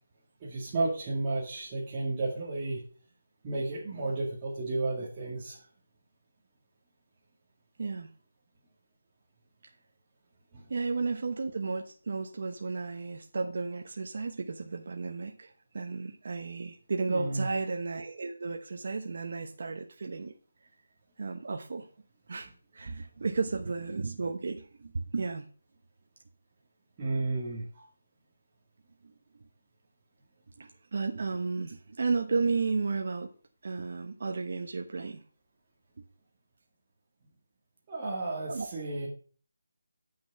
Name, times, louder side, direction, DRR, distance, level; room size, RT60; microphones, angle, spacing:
voice 1, 0.4-2.8 3.4-5.6 10.5-10.7 17.1-17.5 27.0-27.8 37.9-39.1, right 2 dB, 20° right, -7 dB, 2.0 m, -32 dB
voice 2, 10.7-20.3 21.2-21.9 22.3-25.4 30.6-33.3 33.6-35.2 38.5-38.7, right 4 dB, 55° right, 4 dB, 1.0 m, -33 dB
8.6 x 6.2 x 5.4 m, 0.41 s
hypercardioid pair, 170°, 0 cm